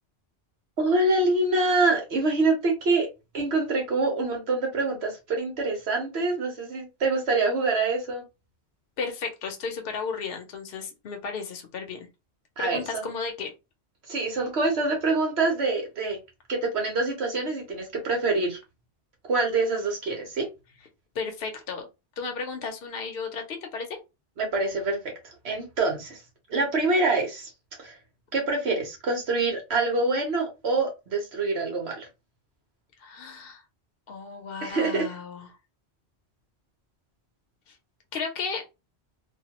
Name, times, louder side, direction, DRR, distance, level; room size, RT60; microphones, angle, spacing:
voice 1, 0.8-3.1 3.3-8.2 12.6-13.1 14.1-16.2 16.5-18.6 19.3-20.5 24.4-25.0 25.4-26.2 26.5-27.5 27.8-28.0 28.3-32.1 34.6-35.1, right 3 dB, 70° right, 1.3 m, -25 dB
voice 2, 9.0-12.1 12.6-13.5 21.1-21.9 22.2-23.9 33.0-33.6 34.1-35.5 38.1-38.6, left 5 dB, 60° left, 0.9 m, -34 dB
2.9 x 2.3 x 2.9 m
omnidirectional pair, 1.1 m